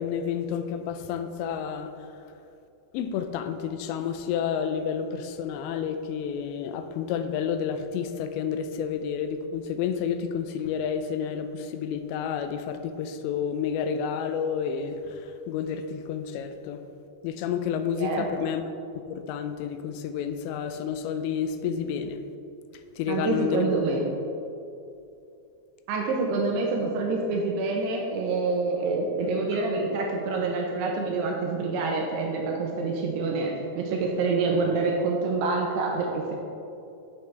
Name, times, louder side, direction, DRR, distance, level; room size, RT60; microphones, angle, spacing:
voice 1, 0.0-1.9 2.9-16.8 17.2-18.6 19.1-22.2 23.0-23.7 29.5-29.6, left 7 dB, 85° left, 8 dB, 2.8 m, -30 dB
voice 2, 17.9-18.3 23.1-24.0 25.9-36.4, right 3 dB, 80° right, 0 dB, 2.7 m, -27 dB
11.5 x 7.1 x 3.4 m, 2.7 s
omnidirectional pair, 5.1 m